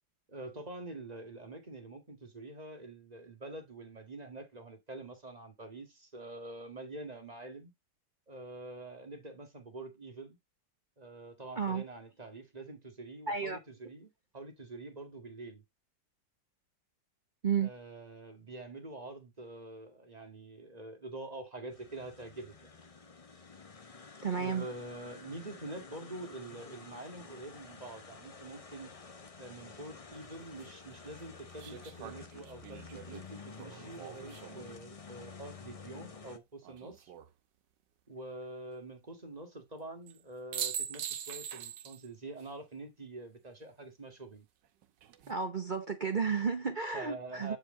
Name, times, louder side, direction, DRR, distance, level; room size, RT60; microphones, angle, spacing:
voice 1, 0.3-7.7 8.3-10.4 11.0-15.6 17.6-22.8 24.4-28.9 29.4-37.1 38.1-44.5 46.9-47.6, right 2 dB, 20° right, 1.9 m, -46 dB
voice 2, 13.3-13.6 17.4-17.7 24.2-24.7 45.3-47.6, right 6 dB, 50° right, 0.5 m, -32 dB
sound 1, 21.7-36.4, left 4 dB, 35° left, 0.5 m, -51 dB
sound 2, 30.1-30.2 31.6-34.8 36.6-37.3 40.1-40.2 40.5-42.1 42.4-42.5 44.8-45.3, right 9 dB, 75° right, 1.5 m, -42 dB
8.7 x 5.0 x 3.7 m
omnidirectional pair, 2.0 m